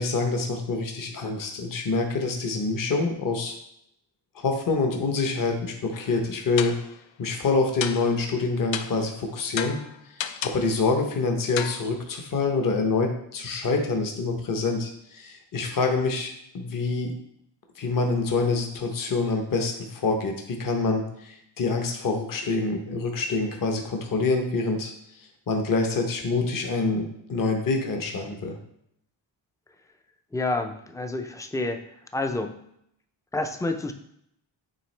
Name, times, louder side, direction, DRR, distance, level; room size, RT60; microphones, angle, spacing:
voice 1, 0.0-3.6 4.3-6.8 7.2-9.8 10.1-17.1 17.8-28.6, left 3 dB, 45° left, 3 dB, 0.8 m, -26 dB
sound 1, 5.9-6.2 6.6-7.0 7.8-8.3 8.7-9.1 9.6-10.7 11.6-11.8, left 9 dB, 75° left, 0.5 m, -33 dB
voice 2, 30.3-31.8 32.1-32.5 33.3-33.9, left 2 dB, 10° left, 6 dB, 0.3 m, -28 dB
9.0 x 3.6 x 3.2 m, 0.74 s
wide cardioid pair, 135°, 47 cm